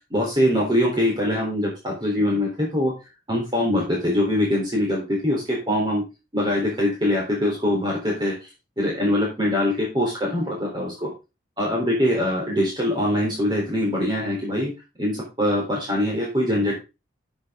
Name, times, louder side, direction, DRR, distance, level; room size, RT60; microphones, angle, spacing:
voice 1, 0.1-2.9 3.3-6.0 6.3-8.3 8.8-11.1 11.6-14.7 15.0-16.7, left 1 dB, 25° right, -3 dB, 3.8 m, -23 dB
12.0 x 8.1 x 3.7 m, 0.28 s
head